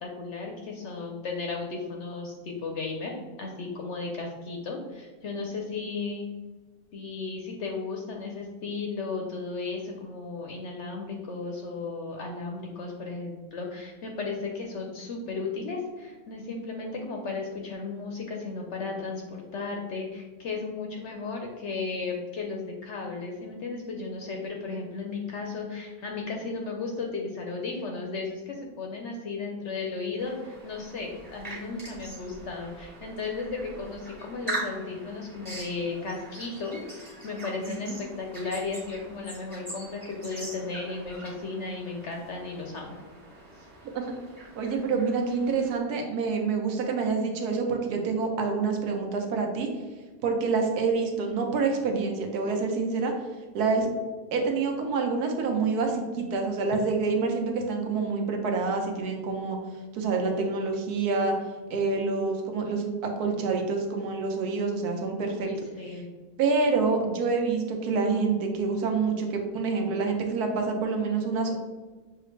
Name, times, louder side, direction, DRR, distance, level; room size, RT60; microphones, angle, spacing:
voice 1, 0.0-6.3 6.9-43.0 65.2-66.1, left 4 dB, 65° left, 1 dB, 0.7 m, -35 dB
sound 1, 30.2-45.8, right 2 dB, 25° right, 1.4 m, -42 dB
voice 2, 37.7-38.0 43.8-44.0 44.4-49.7 50.2-53.1 53.5-53.9 54.3-59.6 59.9-61.3 61.7-65.5 66.4-71.5, right 4 dB, 80° right, 2 dB, 1.2 m, -27 dB
6.6 x 2.4 x 3.1 m, 1.3 s
omnidirectional pair, 1.6 m